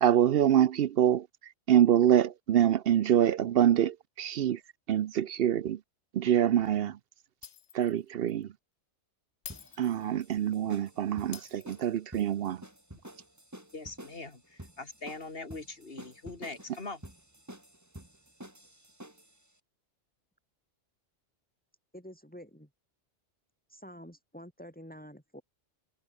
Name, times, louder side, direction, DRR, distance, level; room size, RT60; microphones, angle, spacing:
voice 1, 0.0-1.3 1.7-4.6 4.9-5.8 6.1-7.0 7.7-8.5 9.8-12.6, right 10 dB, 60° right, 0.8 m, -25 dB
Shatter, 7.4-8.0 8.3-8.4 9.4-10.5 11.3-12.3, left 9 dB, 75° left, 1.3 m, -48 dB
sound 1, 9.5-19.4, right 1 dB, 15° right, 2.8 m, -50 dB
voice 2, 13.7-17.0, left 3 dB, 55° left, 3.1 m, -42 dB
voice 3, 21.9-22.7 23.7-25.4, equal, 5° left, 6.1 m, -48 dB
omnidirectional pair, 1.2 m